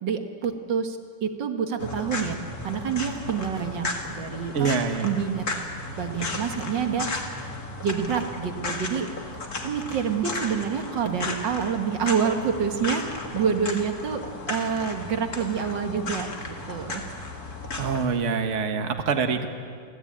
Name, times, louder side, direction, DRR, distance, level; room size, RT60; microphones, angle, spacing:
voice 1, 0.0-2.4 2.6-4.7 5.0-5.5 6.0-7.1 7.8-9.1 9.6-17.2, right 7 dB, 80° right, 6 dB, 2.1 m, -27 dB
sound 1, 1.8-18.1, left 2 dB, 55° left, 2.7 m, -34 dB
voice 2, 4.5-5.1 17.8-19.5, right 5 dB, 45° right, 6 dB, 1.6 m, -25 dB
29.5 x 13.5 x 8.7 m, 2.2 s
omnidirectional pair, 1.9 m